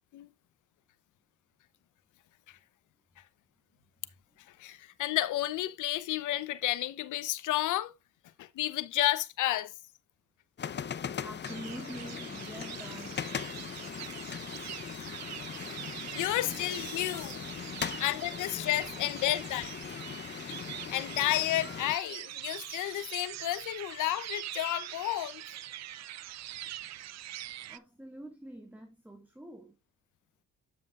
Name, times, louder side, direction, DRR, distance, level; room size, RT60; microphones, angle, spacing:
voice 1, 4.6-7.9 8.4-9.7 15.9-17.4 18.0-19.7 20.1-20.2 20.5-20.6 20.9-25.4, left 14 dB, 80° left, 0.8 m, -31 dB
sound 1, 10.6-22.0, left 7 dB, 35° left, 0.7 m, -40 dB
voice 2, 11.2-13.2 16.4-16.7 17.8-18.0 19.0-19.1 19.3-19.5 27.7-29.8, right 1 dB, 5° right, 1.8 m, -46 dB
sound 2, 11.4-27.8, right 13 dB, 60° right, 0.6 m, -44 dB
8.9 x 7.6 x 2.5 m
cardioid pair, 90°, 30 cm